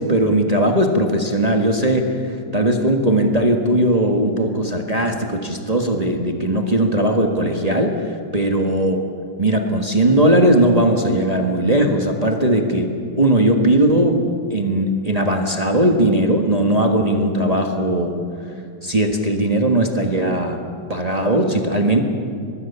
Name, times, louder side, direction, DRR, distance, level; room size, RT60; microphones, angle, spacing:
voice 1, 0.0-9.1 9.4-14.2 14.5-18.2 18.8-20.6 20.9-22.0, right 1 dB, 25° right, 2 dB, 1.6 m, -18 dB
24.0 x 21.0 x 6.9 m, 2.4 s
omnidirectional pair, 1.8 m